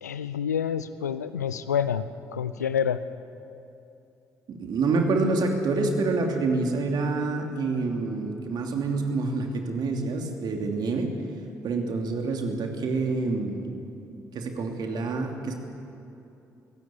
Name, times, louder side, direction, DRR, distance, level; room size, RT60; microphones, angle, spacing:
voice 1, 0.0-3.0, left 8 dB, 85° left, 14 dB, 0.6 m, -28 dB
voice 2, 4.5-11.1 11.6-13.7 14.3-15.5, right 3 dB, 50° right, 3 dB, 2.9 m, -27 dB
24.0 x 17.5 x 8.5 m, 2.7 s
figure-of-eight pair, 45°, 9 cm